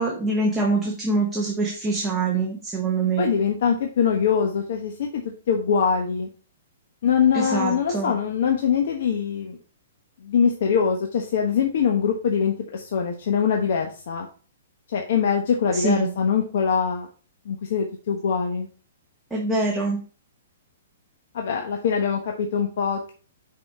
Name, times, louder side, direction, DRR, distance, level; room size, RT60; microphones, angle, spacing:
voice 1, 0.0-3.2 7.3-8.1 15.7-16.1 19.3-20.0, right 3 dB, 5° right, -3 dB, 1.0 m, -24 dB
voice 2, 3.2-5.2 5.5-6.3 7.0-9.6 10.2-14.3 14.9-17.1 17.4-18.7 21.3-23.1, left 6 dB, 60° left, 2 dB, 1.0 m, -23 dB
5.9 x 5.0 x 4.2 m, 0.38 s
hypercardioid pair, 160°, 0 cm